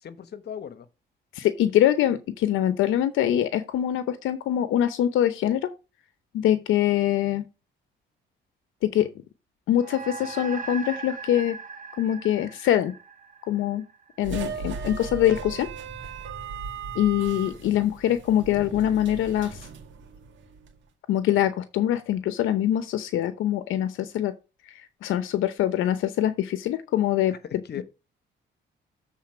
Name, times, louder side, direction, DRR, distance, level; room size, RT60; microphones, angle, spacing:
voice 1, 0.0-0.9 14.5-14.6 17.6-17.9 27.3-27.4 27.6-27.8, left 8 dB, 55° left, 1.2 m, -38 dB
voice 2, 1.3-5.7 6.3-7.4 8.8-9.1 9.7-11.6 12.0-12.9 13.5-13.8 14.2-15.7 16.9-19.7 21.1-24.3 25.0-27.4 27.8-27.9, left 11 dB, 85° left, 0.8 m, -24 dB
sound 1, 9.8-14.5, right 5 dB, 40° right, 0.8 m, -39 dB
sound 2, 14.2-20.7, right 5 dB, 70° right, 1.9 m, -37 dB
7.4 x 4.1 x 6.2 m
cardioid pair, 90°, 20 cm